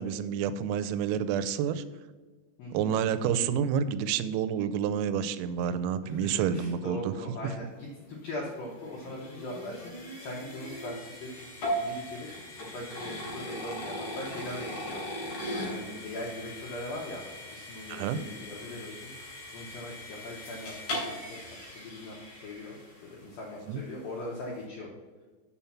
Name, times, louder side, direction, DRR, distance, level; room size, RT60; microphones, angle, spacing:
voice 1, 0.0-1.8 2.7-7.1 17.9-18.2 23.7-23.8, right 8 dB, 90° right, 13 dB, 3.3 m, -29 dB
voice 2, 2.6-3.0 6.0-11.5 11.7-22.8 23.1-24.9, left 1 dB, 80° left, -3 dB, 2.0 m, -41 dB
sound 1, 8.1-23.3, equal, 45° left, 4.2 m, -39 dB
7.1 x 5.7 x 7.1 m, 1.4 s
omnidirectional pair, 5.9 m